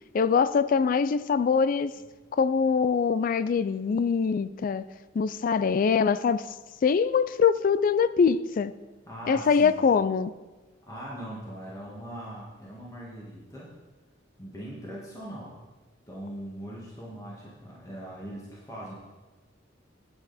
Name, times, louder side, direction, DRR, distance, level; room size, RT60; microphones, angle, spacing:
voice 1, 0.1-1.9 2.3-4.9 5.1-6.5 6.8-8.7 9.3-10.3, left 6 dB, 45° left, 15 dB, 0.3 m, -23 dB
voice 2, 9.1-9.8 10.9-13.7 14.4-15.5 16.1-18.9, right 1 dB, 20° left, -5 dB, 1.7 m, -40 dB
8.8 x 8.7 x 4.1 m, 1.2 s
head